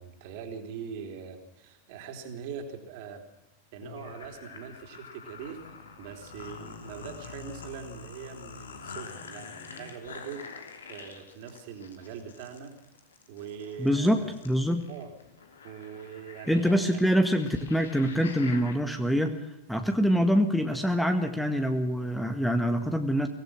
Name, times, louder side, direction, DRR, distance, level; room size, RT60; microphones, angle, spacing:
voice 1, 0.0-3.2 3.7-5.6 6.0-12.7 13.3-14.4 14.9-15.1 15.6-17.0, right 7 dB, 50° right, 5 dB, 3.7 m, -42 dB
sound 1, 3.8-18.8, left 5 dB, 65° left, 3.1 m, -46 dB
voice 2, 13.8-14.2 14.4-14.8 16.5-23.3, equal, ahead, 6 dB, 1.8 m, -25 dB
24.0 x 18.0 x 6.3 m, 0.91 s
figure-of-eight pair, 90°, 0 cm